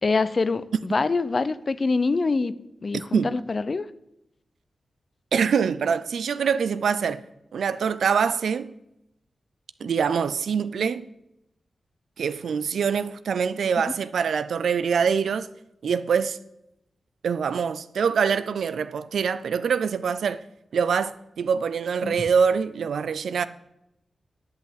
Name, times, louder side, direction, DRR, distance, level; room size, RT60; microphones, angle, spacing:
voice 1, 0.0-2.5 2.8-3.9 22.0-22.2, left 3 dB, 50° left, 0.6 m, -25 dB
voice 2, 5.3-7.2 7.5-8.7 9.8-11.1 12.2-15.5 15.8-16.4 17.2-20.4 20.7-23.4, right 6 dB, 85° right, 0.4 m, -24 dB
10.5 x 5.7 x 7.7 m
cardioid pair, 50°, 0 cm